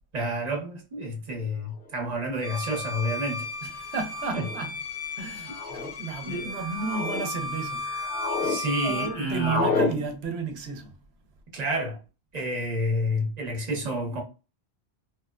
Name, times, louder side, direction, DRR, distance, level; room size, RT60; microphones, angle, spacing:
voice 1, 0.1-3.5 4.3-4.4 6.2-6.5 8.4-10.0 11.5-12.0 12.3-14.2, equal, 40° right, 0.9 m, -29 dB
sound 1, 1.9-2.0 3.0-3.3 4.2-4.6 5.4-5.9 6.5-7.2 7.7-8.6 8.8-9.9, left 3 dB, 60° left, 0.8 m, -30 dB
Bowed string instrument, 2.4-9.2, left 3 dB, 40° left, 0.6 m, -35 dB
voice 2, 3.6-4.8 5.2-7.9 8.8-10.9, right 5 dB, 70° right, 0.9 m, -33 dB
3.0 x 2.1 x 2.3 m
omnidirectional pair, 1.1 m